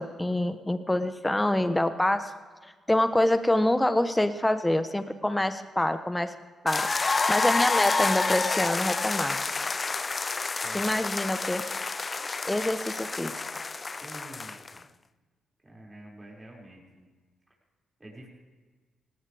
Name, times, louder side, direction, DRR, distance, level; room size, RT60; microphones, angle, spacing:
voice 1, 0.0-2.3 2.6-6.3 6.6-6.8 7.3-9.4 10.7-11.6 12.4-13.4, left 1 dB, 15° left, 10 dB, 1.2 m, -26 dB
sound 1, 6.7-14.8, left 3 dB, 35° left, 0.5 m, -29 dB
voice 2, 10.6-10.9 14.0-14.9 15.6-17.1 18.0-18.3, right 1 dB, 20° right, -4 dB, 6.1 m, -47 dB
18.5 x 18.0 x 3.6 m, 1.4 s
hypercardioid pair, 45°, 0 cm